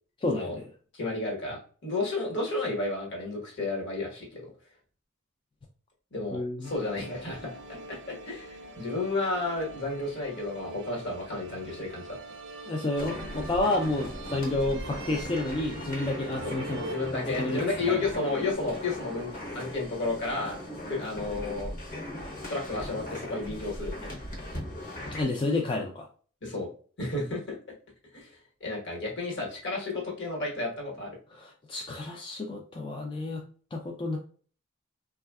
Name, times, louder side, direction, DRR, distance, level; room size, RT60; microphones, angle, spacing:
voice 1, 0.2-0.7 6.3-6.7 12.7-16.9 17.3-17.6 17.9-18.0 25.1-26.1 31.3-33.4 33.7-34.2, left 2 dB, 25° left, 0 dB, 0.3 m, -30 dB
voice 2, 0.9-4.5 6.1-12.2 16.4-16.5 16.8-19.3 19.5-20.6 20.9-21.7 22.5-24.2 26.4-26.7 27.0-27.6 28.1-28.3 28.6-31.2, left 2 dB, 60° left, -2 dB, 1.2 m, -32 dB
sound 1, 6.6-18.5, right 2 dB, 60° right, 0.5 m, -44 dB
sound 2, 13.0-25.2, left 1 dB, 40° left, 0.8 m, -39 dB
3.4 x 2.3 x 2.2 m, 0.42 s
head